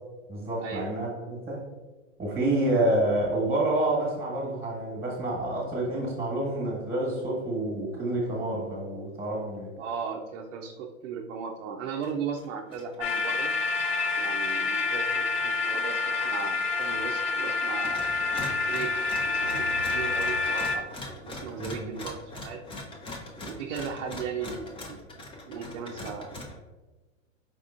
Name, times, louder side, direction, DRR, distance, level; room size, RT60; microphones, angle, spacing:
voice 1, 0.3-1.6 2.2-9.7 21.6-21.9, right 1 dB, 15° right, -4 dB, 1.4 m, -28 dB
voice 2, 9.8-13.5 14.2-18.0 18.6-18.9 19.3-20.8 21.2-22.6 23.5-25.0 25.5-26.4, right 6 dB, 60° right, 1 dB, 0.6 m, -36 dB
sound 1, 11.9-12.1 12.4-13.2 13.4-17.4 17.7-26.6, left 2 dB, 15° left, 0.6 m, -42 dB
sound 2, 13.0-20.8, left 3 dB, 55° left, 0.6 m, -28 dB
sound 3, 15.9-16.0 16.3-16.6 16.9-17.0 19.4-20.4, equal, 90° left, 1.2 m, -42 dB
5.0 x 3.5 x 2.5 m, 1.2 s
hypercardioid pair, 115°, 39 cm